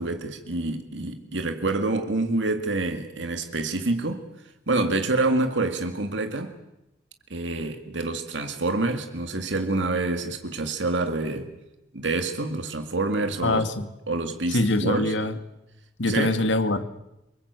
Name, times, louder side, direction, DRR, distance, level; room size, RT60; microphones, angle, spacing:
voice 1, 0.0-4.2 4.7-6.5 7.3-11.5 11.9-13.6 14.1-15.1 16.1-16.3, right 2 dB, 75° right, 2.1 m, -27 dB
voice 2, 13.4-13.9 14.5-15.3 16.0-16.9, left 2 dB, 75° left, 2.0 m, -24 dB
26.5 x 23.5 x 8.3 m
head